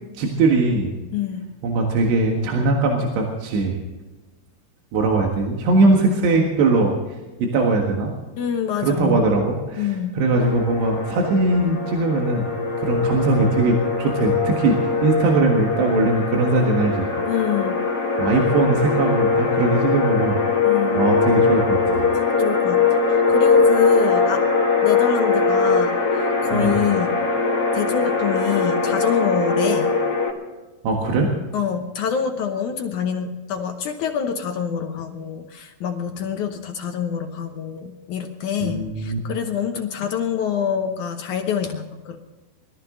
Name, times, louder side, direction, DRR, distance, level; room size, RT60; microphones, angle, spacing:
voice 1, 0.2-0.9 1.6-3.8 4.9-6.9 7.4-8.1 8.8-9.9 10.2-12.5 12.8-17.1 18.2-20.4 21.0-22.1 26.5-26.7 30.8-31.4 38.6-39.2, right 3 dB, 85° right, 0 dB, 3.8 m, -20 dB
voice 2, 1.1-1.5 8.4-9.2 9.8-10.1 17.3-17.8 20.6-21.0 22.1-22.8 23.1-24.4 24.8-27.1 27.7-29.9 31.5-42.2, left 7 dB, 75° left, 4 dB, 1.8 m, -26 dB
sound 1, 10.3-30.3, left 4 dB, 45° left, 1.3 m, -21 dB
22.0 x 13.5 x 3.9 m, 1.2 s
omnidirectional pair, 4.8 m